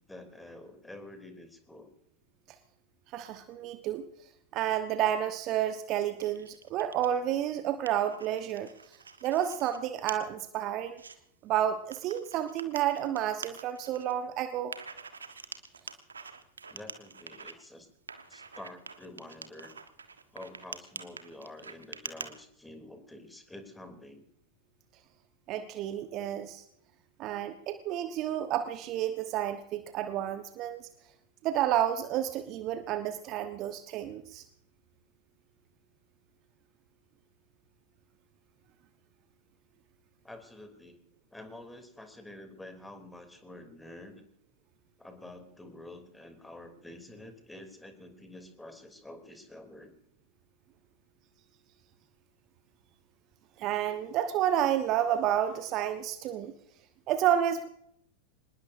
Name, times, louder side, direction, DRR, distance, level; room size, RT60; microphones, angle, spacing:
voice 1, 0.1-1.9 16.7-17.9 18.3-19.7 20.3-24.3 40.2-41.0 41.3-44.2 45.0-49.9, left 1 dB, 5° left, 6 dB, 3.1 m, -48 dB
voice 2, 3.1-4.0 4.5-8.7 9.2-11.0 11.4-14.7 25.5-26.6 27.2-30.9 31.4-34.4 53.6-56.5 57.1-57.7, right 11 dB, 35° right, 9 dB, 1.2 m, -30 dB
sound 1, 6.2-7.1 7.5-9.8 10.1-10.2 10.7-11.1 11.9-14.1 14.7-17.5 18.1-22.3, right 5 dB, 75° right, 1.3 m, -45 dB
25.5 x 20.5 x 2.7 m, 0.71 s
figure-of-eight pair, 90°, 0 cm